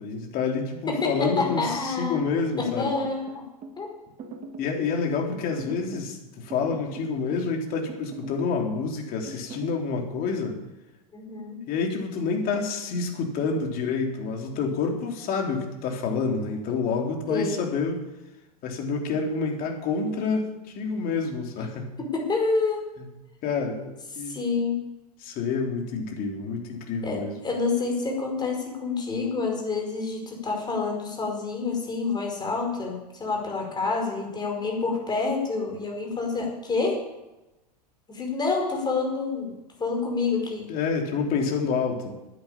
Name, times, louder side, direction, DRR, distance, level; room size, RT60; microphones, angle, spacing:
voice 1, 0.0-2.9 4.6-10.6 11.7-18.1 18.6-21.9 23.4-24.4 25.2-27.4 40.7-42.1, left 5 dB, 45° left, 2 dB, 3.3 m, -28 dB
voice 2, 0.9-2.2 2.6-3.4 3.8-3.9 11.1-11.6 17.3-17.6 22.0-22.8 24.1-24.8 27.0-37.0 38.1-40.7, left 4 dB, 20° left, 1 dB, 5.2 m, -28 dB
sound 1, 2.8-3.8 4.2-4.8 5.6-6.1 6.5-7.5 7.9-8.4 9.3-9.8, right 3 dB, 35° right, 2.1 m, -41 dB
10.5 x 9.8 x 8.7 m, 1.0 s
hypercardioid pair, 100°, 21 cm